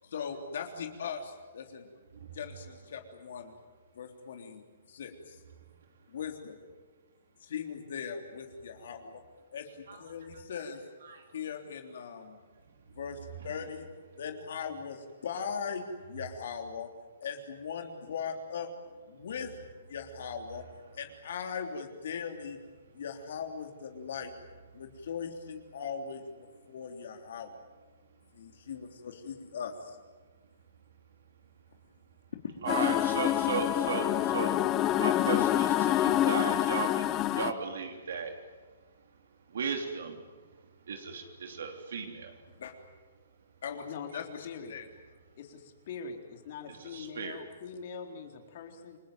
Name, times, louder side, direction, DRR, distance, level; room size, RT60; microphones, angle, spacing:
voice 1, 0.0-1.9 2.3-3.5 4.0-4.6 4.9-5.4 6.1-6.6 7.4-9.2 9.5-10.8 11.3-12.4 13.0-13.9 14.2-16.9 17.2-18.7 19.1-19.5 19.9-20.6 20.9-22.6 22.9-24.3 24.7-27.5 28.3-30.0 42.6-42.7 43.6-43.9 44.1-44.9, left 6 dB, 70° left, 3 dB, 3.5 m, -39 dB
voice 2, 32.6-34.7 35.0-37.1 37.3-38.4 39.5-40.2 40.9-42.3 46.7-47.4, right 5 dB, 75° right, 4 dB, 3.4 m, -36 dB
sound 1, 32.7-37.5, left 13 dB, 25° left, 0.8 m, -27 dB
voice 3, 44.4-44.8 45.4-49.0, left 6 dB, 50° left, 4 dB, 4.1 m, -43 dB
29.0 x 20.5 x 9.3 m, 1.4 s
hypercardioid pair, 155°, 0 cm